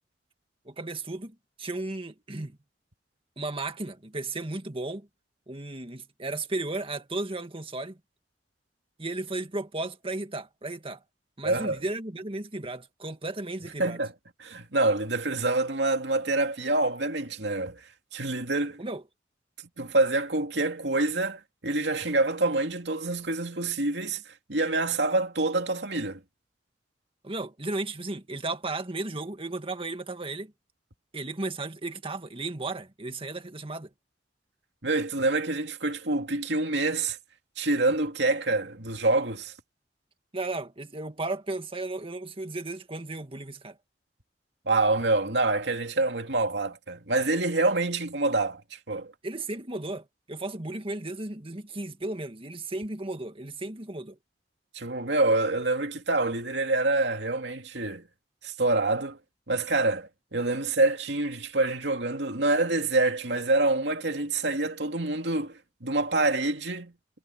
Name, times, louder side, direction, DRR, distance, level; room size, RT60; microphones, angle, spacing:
voice 1, 0.7-2.6 3.4-5.1 5.5-8.0 9.0-11.0 11.4-14.0 18.8-19.0 27.2-30.5 31.1-33.9 40.3-43.8 49.2-54.2, right 2 dB, 30° right, 1.9 m, -34 dB
voice 2, 11.4-11.8 13.8-14.1 14.4-17.8 18.1-18.8 19.8-26.2 34.8-37.2 37.6-39.5 44.7-49.1 54.7-58.1 58.4-59.2 59.5-66.9, right 2 dB, 75° right, 2.6 m, -26 dB
head